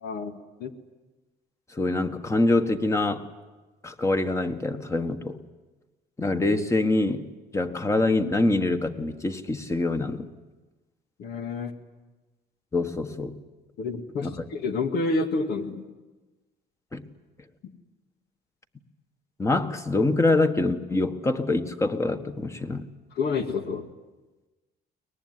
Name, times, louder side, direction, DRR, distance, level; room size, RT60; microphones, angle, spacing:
voice 1, 0.0-0.7 11.2-11.7 13.8-15.9 23.2-23.9, left 3 dB, 70° left, 6 dB, 2.3 m, -29 dB
voice 2, 1.7-3.3 3.8-5.4 6.2-7.3 7.5-10.3 12.7-13.4 14.2-14.3 16.9-17.1 19.4-22.9, left 2 dB, 15° left, 8 dB, 1.6 m, -25 dB
23.5 x 19.5 x 9.8 m, 1.2 s
cardioid pair, 110°, 17 cm